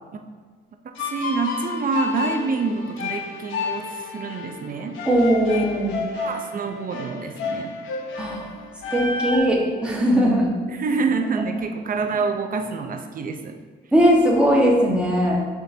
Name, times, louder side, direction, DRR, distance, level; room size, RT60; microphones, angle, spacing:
sound 1, 1.0-9.4, left 4 dB, 85° left, 0.8 m, -31 dB
voice 1, 1.0-5.0 5.5-5.6 6.1-7.8 10.7-13.6, right 4 dB, 45° right, 6 dB, 0.6 m, -27 dB
voice 2, 5.0-5.9 8.2-8.5 8.9-10.5 13.9-15.4, equal, 5° right, -4 dB, 1.4 m, -19 dB
9.0 x 3.8 x 2.7 m, 1.5 s
cardioid pair, 90°, 20 cm